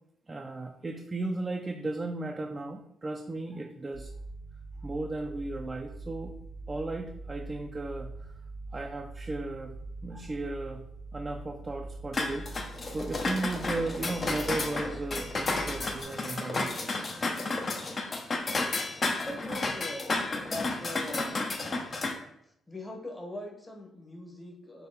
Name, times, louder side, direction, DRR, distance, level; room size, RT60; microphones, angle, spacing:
voice 1, 0.3-4.1 4.8-6.3 6.7-8.3 8.7-10.9 11.1-16.7, right 2 dB, 25° right, 2 dB, 0.4 m, -36 dB
sound 1, 3.9-16.0, right 3 dB, 65° right, 0.9 m, -43 dB
sound 2, 12.1-22.1, left 3 dB, 40° left, 0.6 m, -32 dB
voice 2, 19.2-20.1 20.4-21.5 22.7-24.9, left 1 dB, 15° left, 2 dB, 0.9 m, -41 dB
4.1 x 2.9 x 3.9 m, 0.77 s
cardioid pair, 75°, 0 cm